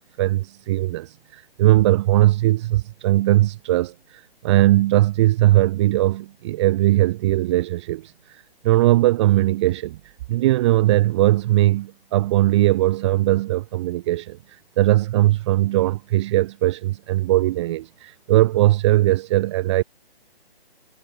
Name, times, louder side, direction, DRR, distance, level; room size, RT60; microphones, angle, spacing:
voice 1, 0.2-19.8, right 16 dB, 30° right, 1.8 m, -20 dB
figure-of-eight pair, 140°, 31 cm